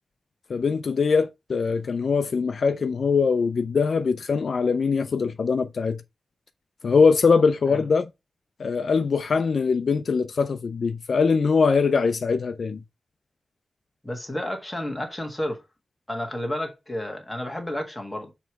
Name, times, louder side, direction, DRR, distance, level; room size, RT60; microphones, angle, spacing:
voice 1, 0.5-6.0 6.8-8.1 8.6-12.8, left 5 dB, 60° left, 0.4 m, -22 dB
voice 2, 14.0-15.6 16.1-18.3, left 1 dB, 5° left, 1.5 m, -31 dB
6.8 x 3.1 x 4.5 m
wide cardioid pair, 175°, 0 cm